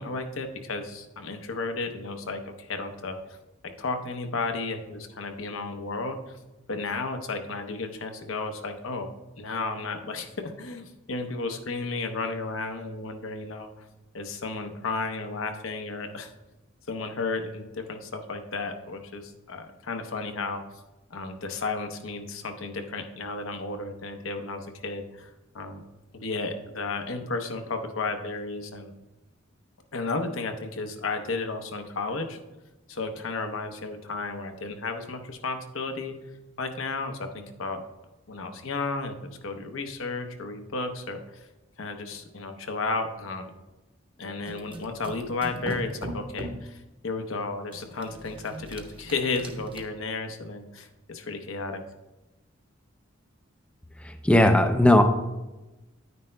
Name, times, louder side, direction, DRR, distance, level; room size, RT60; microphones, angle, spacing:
voice 1, 0.0-3.2 3.8-6.4 6.7-9.1 9.4-13.7 14.1-16.3 16.9-20.6 21.1-25.9 26.1-28.9 29.9-32.4 32.9-36.2 36.6-37.8 38.3-41.5 41.8-43.6 44.2-51.8, left 3 dB, 75° left, 5 dB, 0.8 m, -33 dB
sound 1, 44.5-46.7 47.7-49.8, right 1 dB, 25° right, 0.8 m, -39 dB
voice 2, 54.2-55.0, left 1 dB, 5° left, 5 dB, 0.4 m, -17 dB
9.6 x 9.5 x 2.2 m, 1.1 s
head